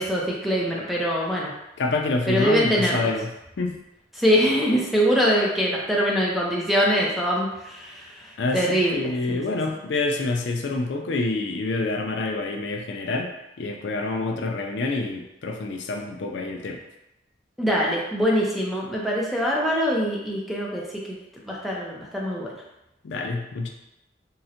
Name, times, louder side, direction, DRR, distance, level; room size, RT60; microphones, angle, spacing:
voice 1, 0.0-1.5 2.3-3.1 4.2-9.4 17.6-21.2 21.4-22.5, equal, ahead, -4 dB, 0.4 m, -23 dB
voice 2, 1.8-3.3 3.6-3.8 8.4-13.3 13.6-16.8 23.0-23.7, left 3 dB, 65° left, 2 dB, 0.4 m, -27 dB
3.7 x 2.1 x 2.7 m, 0.89 s
head